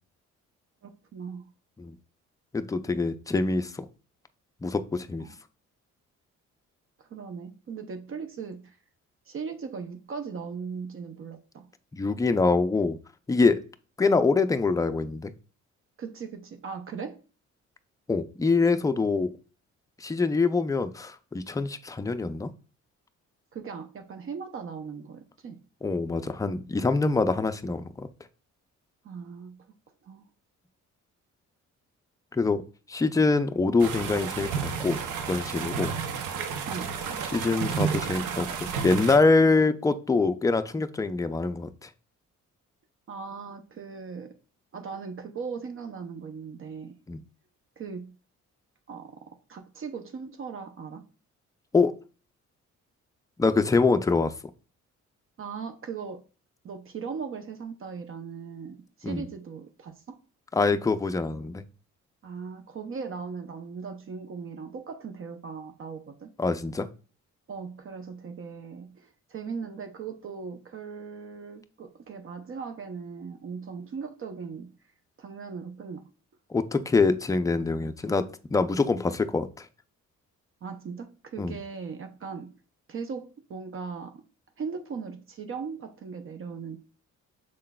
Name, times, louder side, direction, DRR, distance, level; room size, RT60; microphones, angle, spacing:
voice 1, 0.8-1.5 5.2-5.4 7.0-8.8 9.3-11.7 16.0-17.2 23.5-25.6 29.0-29.6 30.0-30.2 36.7-37.0 43.1-44.4 44.7-47.0 47.8-48.1 48.9-51.1 55.4-56.2 56.6-60.2 62.2-66.3 67.5-74.7 75.2-76.1 80.6-82.5 82.9-84.2 84.6-86.8, right 5 dB, 45° right, 0.6 m, -38 dB
voice 2, 2.5-3.9 4.6-5.3 11.9-13.0 13.3-13.6 14.0-15.3 18.1-19.3 20.0-22.5 25.8-28.1 32.3-32.6 32.9-35.0 35.3-35.9 37.3-38.5 38.8-41.9 47.1-47.2 51.7-51.9 53.4-54.3 59.0-59.3 60.5-61.6 66.4-66.9 76.5-79.7 81.4-81.6, left 3 dB, 10° left, 0.4 m, -24 dB
sound 1, 33.8-39.2, right 6 dB, 85° right, 0.7 m, -31 dB
6.2 x 3.7 x 2.2 m
cardioid pair, 90°, 30 cm